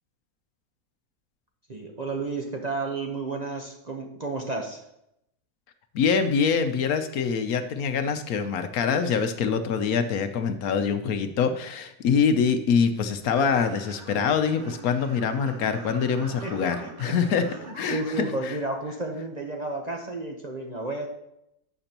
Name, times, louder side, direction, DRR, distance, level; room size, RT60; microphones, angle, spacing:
voice 1, 1.7-4.8 16.4-17.1 17.5-21.1, right 3 dB, 35° right, 1 dB, 0.8 m, -32 dB
voice 2, 5.9-17.4 17.8-18.3, left 6 dB, 75° left, 9 dB, 1.1 m, -24 dB
sound 1, 13.3-18.3, right 2 dB, 65° right, 1.8 m, -43 dB
12.0 x 6.9 x 2.9 m, 0.82 s
omnidirectional pair, 1.6 m